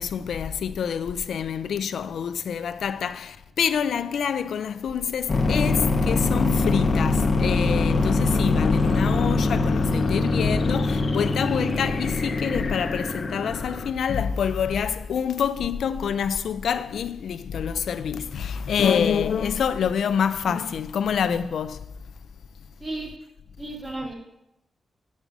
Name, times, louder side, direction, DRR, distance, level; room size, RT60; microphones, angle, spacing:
voice 1, 0.0-21.9, left 7 dB, 80° left, 0.3 m, -26 dB
sound 1, 5.3-13.9, left 3 dB, 45° left, 0.8 m, -23 dB
voice 2, 22.8-23.2 23.6-24.1, right 2 dB, 30° right, 2.2 m, -33 dB
7.3 x 5.4 x 6.0 m
cardioid pair, 95°, 0 cm